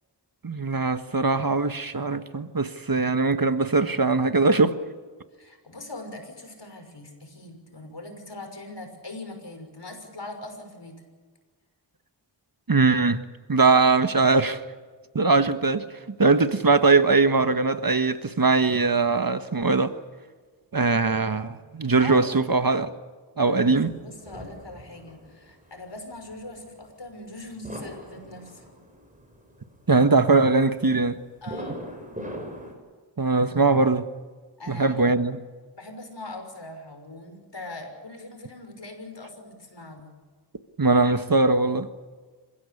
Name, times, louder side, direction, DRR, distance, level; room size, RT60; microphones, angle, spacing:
voice 1, 0.4-4.8 12.7-13.2 13.5-14.6 15.1-20.0 20.7-22.9 23.4-23.9 29.9-31.2 33.2-34.1 34.7-35.4 40.8-41.9, right 3 dB, 50° right, 1.5 m, -21 dB
voice 2, 5.3-11.0 22.0-22.3 23.3-28.6 31.4-32.0 34.6-35.1 35.8-40.1, left 2 dB, 70° left, 6.1 m, -41 dB
sound 1, 23.7-32.7, equal, 15° right, 6.9 m, -41 dB
27.0 x 16.0 x 8.6 m
wide cardioid pair, 50°, 44 cm